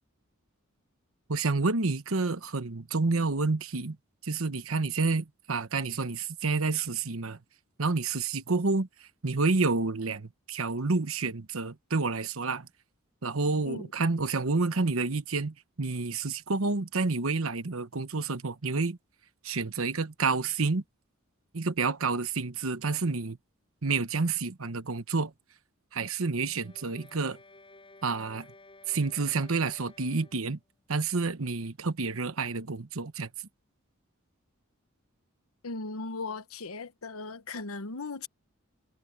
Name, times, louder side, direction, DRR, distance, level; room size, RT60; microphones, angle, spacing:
voice 1, 1.3-4.0 4.2-7.4 7.8-8.9 9.2-12.7 13.2-19.0 19.4-20.8 21.5-23.4 23.8-25.3 25.9-27.4 28.0-28.5 28.9-30.6 30.9-33.3, right 3 dB, 75° right, 1.1 m, -29 dB
sound 1, 26.4-30.6, left 2 dB, 25° left, 7.8 m, -55 dB
voice 2, 35.6-38.3, left 3 dB, 90° left, 1.1 m, -37 dB
head